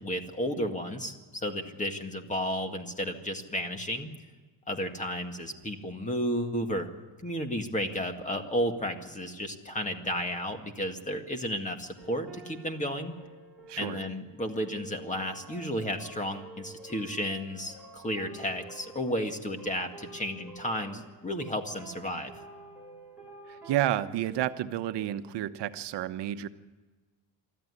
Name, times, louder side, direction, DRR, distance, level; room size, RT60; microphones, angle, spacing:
voice 1, 0.0-4.1 4.7-6.9 7.2-13.1 13.8-22.3, equal, 15° left, 6 dB, 2.0 m, -33 dB
sound 1, 12.0-24.0, right 2 dB, ahead, 7.9 m, -49 dB
voice 2, 13.7-14.0 23.5-26.5, right 12 dB, 60° right, 10 dB, 1.1 m, -30 dB
24.0 x 14.0 x 9.8 m, 1.3 s
cardioid pair, 140°, 46 cm